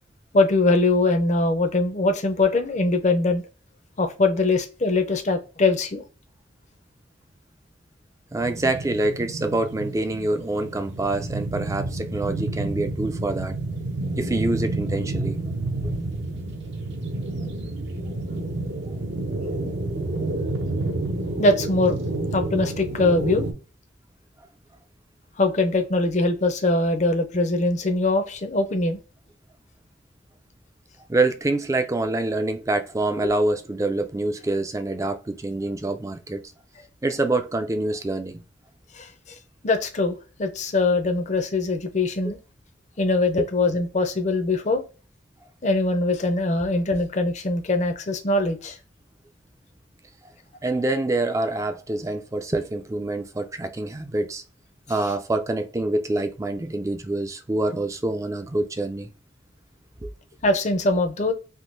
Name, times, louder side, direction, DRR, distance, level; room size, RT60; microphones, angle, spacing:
voice 1, 0.3-3.4 4.0-6.0 21.4-22.0 22.3-23.5 25.4-29.0 33.2-33.3 38.9-39.1 39.6-42.4 43.0-44.8 45.6-48.8 60.4-61.3, left 2 dB, 35° left, 0.5 m, -22 dB
voice 2, 8.3-13.5 14.2-15.4 31.1-36.4 37.0-38.4 43.4-43.5 50.6-54.4 54.9-59.1 60.0-60.1, right 2 dB, 15° right, 0.4 m, -26 dB
sound 1, 8.4-23.5, right 2 dB, 60° right, 0.7 m, -29 dB
3.6 x 2.6 x 2.5 m
head